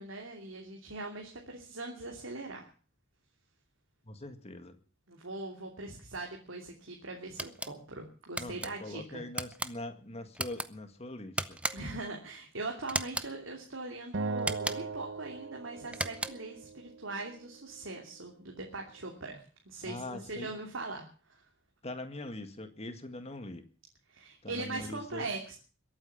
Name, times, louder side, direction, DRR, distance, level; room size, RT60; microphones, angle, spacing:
voice 1, 0.0-2.7 5.1-9.2 11.7-21.4 24.1-25.5, right 2 dB, 85° right, 1 dB, 2.9 m, -41 dB
voice 2, 4.0-4.8 8.4-11.6 19.8-20.5 21.8-23.6 24.4-25.3, left 1 dB, 35° left, 8 dB, 1.9 m, -42 dB
sound 1, 7.4-7.7 8.4-8.7 9.3-9.7 10.3-10.7 11.4-12.0 12.9-13.3 14.4-15.0 15.9-16.5, right 2 dB, 5° right, 0.7 m, -36 dB
Acoustic guitar, 14.1-17.4, right 4 dB, 65° right, 0.8 m, -39 dB
22.0 x 8.9 x 7.1 m, 0.40 s
head